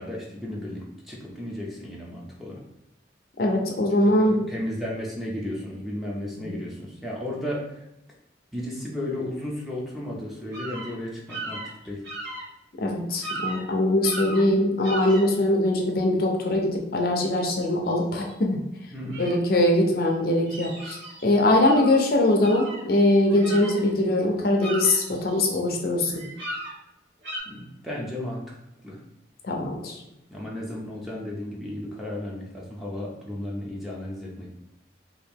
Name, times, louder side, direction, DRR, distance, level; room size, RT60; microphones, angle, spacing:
voice 1, 0.0-2.6 4.2-7.8 8.5-11.6 11.8-12.0 18.9-19.2 27.5-28.5 28.8-29.0 30.3-34.5, left 1 dB, ahead, -4 dB, 0.5 m, -34 dB
voice 2, 3.4-4.4 6.4-6.6 12.8-18.6 19.2-26.1 29.4-30.0, left 1 dB, 50° left, 1 dB, 0.5 m, -22 dB
sound 1, 10.5-10.9 11.3-12.5 12.9-13.0 13.2-13.6 14.0-14.5 14.8-15.2 17.9-18.0 18.3-18.4 19.1-19.4 20.1-21.2 21.6-22.0 22.4-24.1 24.4-25.7 26.1-26.7 27.2-27.4, right 1 dB, 80° right, 1.1 m, -36 dB
2.9 x 2.5 x 3.4 m, 0.87 s
head